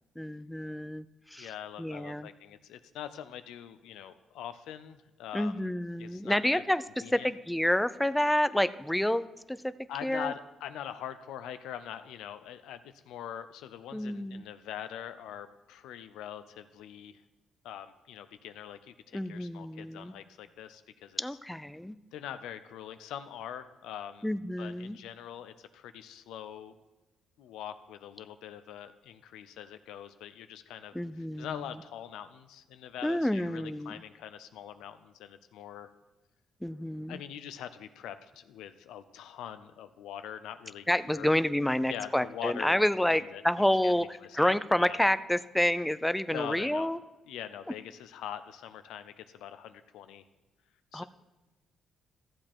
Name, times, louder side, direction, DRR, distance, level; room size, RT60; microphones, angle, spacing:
voice 1, 0.2-1.5 1.8-2.3 5.3-6.8 7.1-9.7 10.0-10.3 13.9-14.4 19.1-20.1 21.2-22.0 24.2-25.0 30.9-31.6 33.0-34.0 36.6-37.2 40.9-47.0 50.9-51.0, left 1 dB, 5° left, 14 dB, 0.4 m, -29 dB
voice 2, 1.4-5.7 6.0-6.6 7.0-7.3 9.9-17.2 17.6-21.2 22.1-24.3 24.6-26.8 27.4-35.9 37.1-41.3 41.8-42.8 43.3-43.4 43.8-43.9 44.2-45.0 46.3-46.9 47.3-50.3 50.9-51.0, left 10 dB, 90° left, 11 dB, 0.6 m, -43 dB
13.5 x 7.6 x 4.5 m, 1.1 s
cardioid pair, 90°, 0 cm